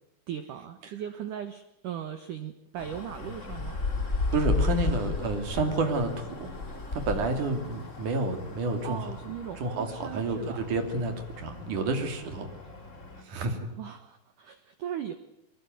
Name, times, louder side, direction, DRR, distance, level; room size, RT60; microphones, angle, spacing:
voice 1, 0.3-3.8 8.8-10.6 13.8-15.1, right 9 dB, 90° right, 9 dB, 1.8 m, -38 dB
sound 1, 2.8-13.2, left 3 dB, 35° left, 1.2 m, -34 dB
voice 2, 4.3-6.5 6.9-9.1 9.6-12.6 13.2-13.7, right 3 dB, 45° right, 6 dB, 3.7 m, -30 dB
23.5 x 21.0 x 9.2 m, 0.78 s
omnidirectional pair, 5.6 m